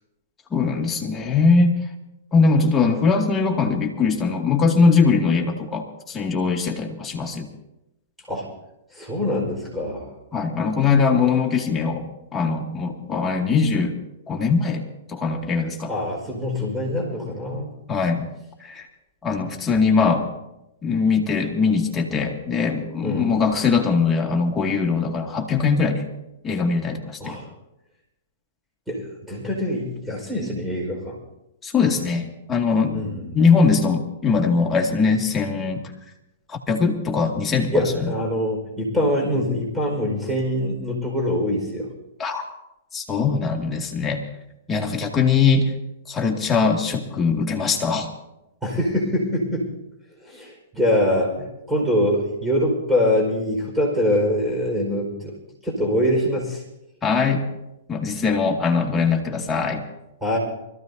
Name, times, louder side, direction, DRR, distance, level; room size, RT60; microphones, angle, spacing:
voice 1, 0.5-1.7 2.3-7.5 10.3-12.1 12.3-14.0 14.3-14.8 15.1-15.9 17.9-18.3 18.6-18.9 19.2-20.3 20.8-26.0 26.4-27.4 31.6-33.0 33.3-35.8 36.5-37.9 42.2-42.4 42.9-44.2 44.7-45.7 46.1-48.1 57.0-57.4 57.9-59.8, left 4 dB, 15° left, 1 dB, 2.2 m, -21 dB
voice 2, 8.9-10.1 15.9-17.7 23.0-23.4 27.2-27.5 28.9-31.2 32.9-33.3 37.7-41.9 48.6-49.7 50.2-55.3 55.6-56.6 60.2-60.4, left 1 dB, 5° right, -1 dB, 4.9 m, -24 dB
25.5 x 15.0 x 2.8 m, 0.91 s
figure-of-eight pair, 110°, 0 cm